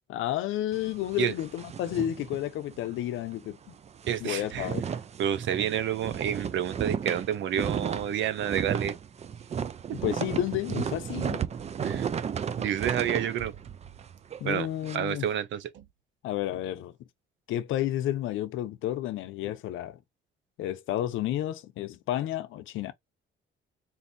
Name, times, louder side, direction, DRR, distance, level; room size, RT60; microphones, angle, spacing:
voice 1, 0.1-3.7 4.2-4.8 9.9-11.4 14.4-15.3 16.2-16.9 17.5-20.0 20.6-22.9, left 13 dB, 85° left, 0.6 m, -31 dB
sound 1, 0.7-3.0 3.3-3.5 3.8-15.0, right 7 dB, 35° right, 0.4 m, -34 dB
voice 2, 4.1-4.7 5.2-9.0 11.8-12.1 12.6-13.5 14.4-14.7 14.9-15.8, right 9 dB, 70° right, 0.6 m, -29 dB
4.0 x 2.6 x 2.6 m
cardioid pair, 90°, 20 cm